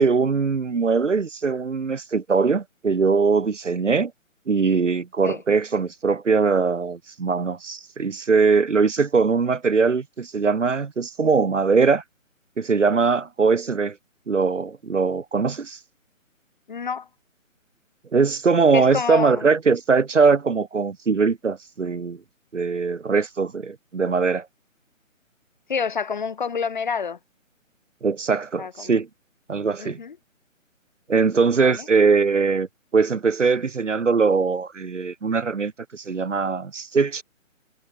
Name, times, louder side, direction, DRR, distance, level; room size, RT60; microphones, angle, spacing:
voice 1, 0.0-4.1 4.5-12.0 12.6-13.9 14.3-15.8 18.1-22.2 22.5-24.5 28.0-29.1 29.5-30.0 31.1-32.7 32.9-37.2, right 5 dB, 65° right, 1.1 m, -21 dB
voice 2, 16.7-17.1 18.7-19.5 25.7-27.2 28.6-28.9 29.8-30.2 31.6-31.8, left 6 dB, 35° left, 1.3 m, -28 dB
figure-of-eight pair, 145°, 40 cm